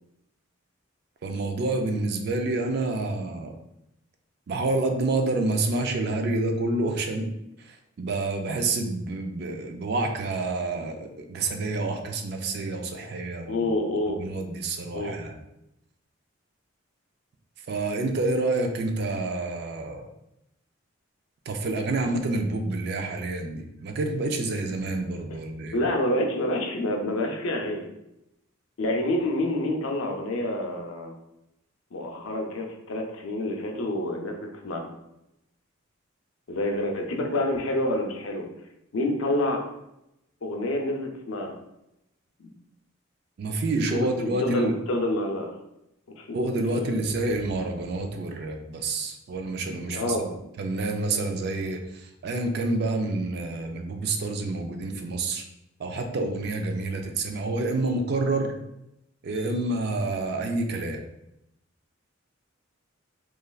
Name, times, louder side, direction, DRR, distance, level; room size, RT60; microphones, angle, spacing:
voice 1, 1.2-3.6 4.5-7.3 7.6-13.7 14.1-15.4 17.7-20.1 21.5-25.8 43.4-44.7 46.3-50.2 50.6-55.4 55.8-58.5 59.2-61.0, right 2 dB, 50° right, 4 dB, 0.3 m, -28 dB
voice 2, 13.5-14.2 14.9-15.2 25.7-27.9 28.8-31.1 31.9-34.9 36.5-38.5 38.9-39.6 40.4-41.5 42.4-42.5 43.9-45.5 46.2-46.4 46.7-46.9 49.9-50.2, left 1 dB, 85° left, 2 dB, 0.5 m, -28 dB
3.1 x 2.3 x 2.3 m, 0.86 s
head